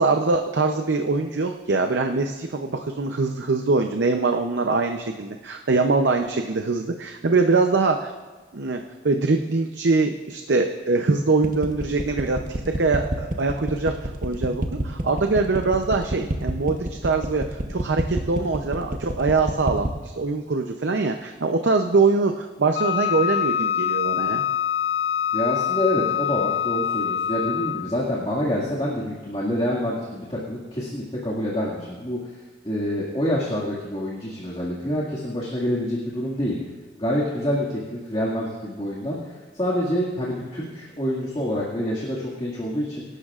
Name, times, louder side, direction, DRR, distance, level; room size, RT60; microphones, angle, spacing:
voice 1, 0.0-8.1 8.5-12.4 12.7-24.4, right 3 dB, 80° right, 5 dB, 0.7 m, -23 dB
sound 1, 11.4-20.0, right 1 dB, 45° right, 0.9 m, -27 dB
Wind instrument woodwind instrument, 22.7-28.0, left 9 dB, 65° left, 0.3 m, -25 dB
voice 2, 25.3-32.3 32.6-36.6 37.0-43.0, left 1 dB, 30° left, -6 dB, 2.0 m, -27 dB
25.0 x 12.0 x 2.5 m, 1.3 s
head